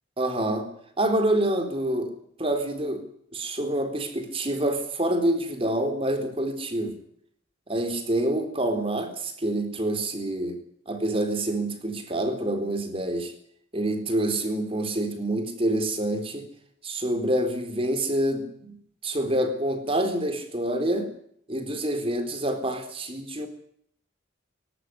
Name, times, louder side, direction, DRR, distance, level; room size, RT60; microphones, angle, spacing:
voice 1, 0.2-0.7 1.0-2.1 2.4-3.0 3.3-7.0 7.7-10.6 10.9-13.3 13.7-16.5 16.8-21.1 21.5-23.5, right 1 dB, 30° right, 7 dB, 4.0 m, -27 dB
18.5 x 17.5 x 9.8 m, 0.67 s
head